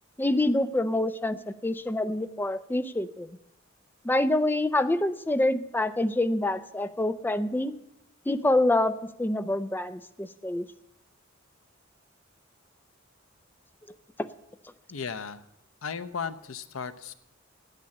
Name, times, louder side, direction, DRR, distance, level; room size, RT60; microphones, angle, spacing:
voice 1, 0.2-3.3 4.0-7.7 8.3-8.9 9.2-10.6, left 1 dB, 10° left, 11 dB, 0.5 m, -26 dB
voice 2, 14.9-15.4 15.8-17.1, left 6 dB, 90° left, 11 dB, 0.7 m, -35 dB
9.2 x 8.2 x 8.6 m, 0.83 s
head